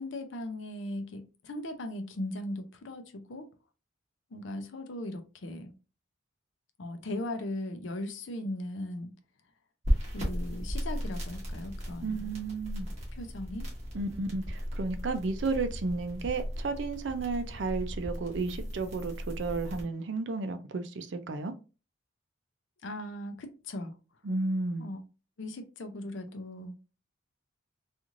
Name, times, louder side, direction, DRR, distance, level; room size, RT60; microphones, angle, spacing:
voice 1, 0.0-3.5 4.3-5.7 6.8-9.1 10.1-12.3 13.2-13.7 22.8-23.9 24.8-25.0 25.4-26.8, left 1 dB, 65° left, 0.5 m, -38 dB
sound 1, 9.8-19.8, equal, 35° right, 1.0 m, -36 dB
voice 2, 12.0-12.9 13.9-21.5 24.2-24.9, right 3 dB, 60° right, 0.4 m, -33 dB
3.0 x 2.4 x 2.4 m
head